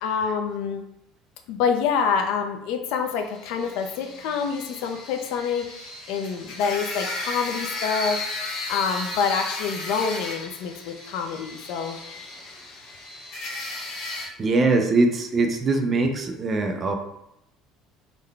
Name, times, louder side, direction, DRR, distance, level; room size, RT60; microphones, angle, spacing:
voice 1, 0.0-0.8 1.5-8.2 8.7-12.0, left 6 dB, 65° left, 5 dB, 0.4 m, -27 dB
sound 1, 3.3-14.3, left 2 dB, 50° left, 0.9 m, -35 dB
voice 2, 14.4-17.0, right 3 dB, 20° right, 5 dB, 0.3 m, -22 dB
3.7 x 2.1 x 3.3 m, 0.80 s
cardioid pair, 175°, 0 cm